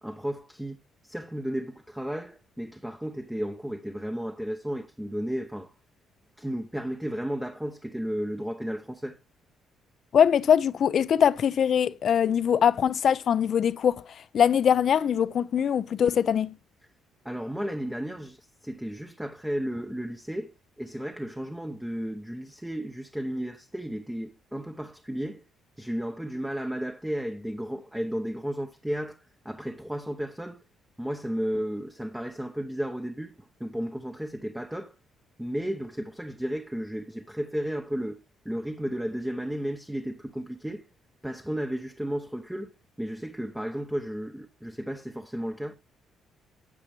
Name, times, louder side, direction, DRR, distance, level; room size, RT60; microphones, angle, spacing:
voice 1, 0.0-5.7 6.4-9.2 17.2-25.4 25.8-30.6 31.0-34.9 35.4-38.2 38.4-40.8 41.2-45.7, equal, 5° right, 0.7 m, -33 dB
voice 2, 10.1-13.9 14.3-16.5, left 8 dB, 60° left, 0.4 m, -22 dB
9.6 x 7.8 x 3.1 m
supercardioid pair, 60°, 0 cm